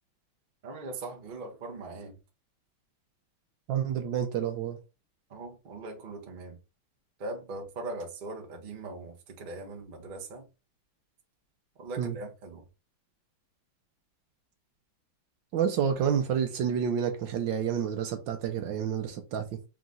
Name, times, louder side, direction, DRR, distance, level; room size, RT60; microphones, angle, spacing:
voice 1, 0.6-2.2 5.3-6.6 7.2-10.5 11.8-12.7, right 2 dB, 40° right, 0.7 m, -40 dB
voice 2, 3.7-4.8 12.0-12.2 15.5-19.4, right 8 dB, 70° right, 1.3 m, -29 dB
3.6 x 3.0 x 3.7 m
omnidirectional pair, 2.3 m